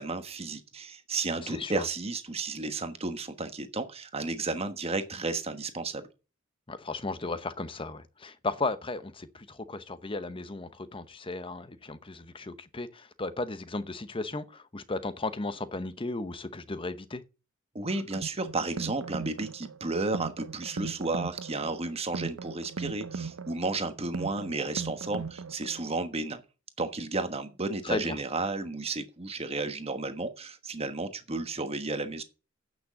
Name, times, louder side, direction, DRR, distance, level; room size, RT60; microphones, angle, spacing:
voice 1, 0.0-6.1 17.7-26.4 26.8-32.2, right 3 dB, 30° right, 1.2 m, -33 dB
voice 2, 1.4-1.9 6.7-17.2 27.8-28.2, left 3 dB, 25° left, 0.8 m, -35 dB
sound 1, 17.9-25.9, right 4 dB, 75° right, 0.6 m, -39 dB
8.9 x 6.2 x 7.6 m
head